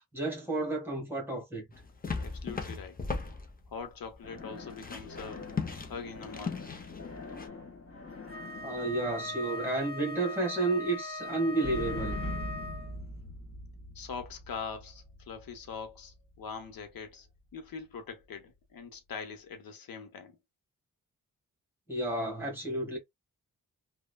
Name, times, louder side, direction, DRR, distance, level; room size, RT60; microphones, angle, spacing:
voice 1, 0.0-1.6 8.6-12.2 21.9-23.0, right 2 dB, 5° right, 1.4 m, -31 dB
sound 1, 1.7-7.5, left 4 dB, 25° left, 0.7 m, -38 dB
voice 2, 2.1-3.0 3.7-5.5 5.9-6.6 13.9-17.3 17.5-20.4, left 5 dB, 80° left, 0.8 m, -42 dB
sound 2, 4.2-10.2 11.6-16.9, left 2 dB, 45° left, 1.6 m, -43 dB
Wind instrument woodwind instrument, 8.3-13.0, left 2 dB, 30° right, 0.5 m, -40 dB
3.1 x 2.2 x 2.2 m
wide cardioid pair, 120°, 34 cm